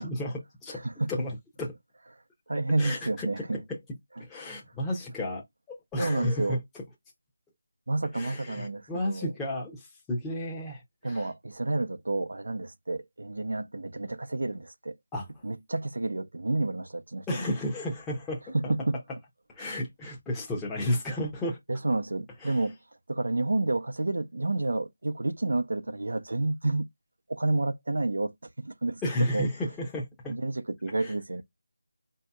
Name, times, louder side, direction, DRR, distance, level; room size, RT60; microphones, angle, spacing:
voice 1, 0.0-0.8 1.1-1.7 2.8-3.8 4.2-6.8 8.1-11.3 15.1-15.4 17.3-18.7 19.5-21.6 22.4-22.7 29.0-30.4 31.0-31.1, left 1 dB, 5° left, 0.8 m, -33 dB
voice 2, 0.7-1.1 2.5-3.6 6.0-6.6 7.9-9.3 11.0-14.9 15.4-17.3 18.5-19.0 21.7-22.8 23.1-26.9 27.3-28.3 28.6-29.0 29.3-29.5 30.3-31.4, right 2 dB, 75° right, 0.6 m, -30 dB
5.0 x 2.7 x 2.3 m
figure-of-eight pair, 165°, 0 cm